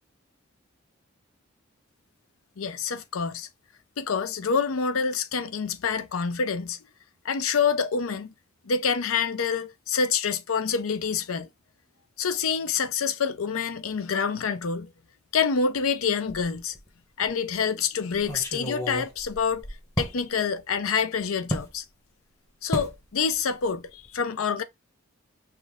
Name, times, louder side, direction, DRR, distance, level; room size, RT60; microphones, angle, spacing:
voice 1, 2.6-3.5 4.0-6.8 7.2-8.3 8.6-11.5 12.2-14.9 15.3-16.8 17.2-19.7 20.0-21.8 22.6-24.6, left 6 dB, 80° left, 0.6 m, -27 dB
sound 1, 16.3-16.9 17.2-17.3 18.1-20.2 21.5-21.7 22.7-23.0 23.3-23.6 23.9-24.1, equal, 15° left, 1.1 m, -32 dB
4.3 x 2.7 x 3.5 m
head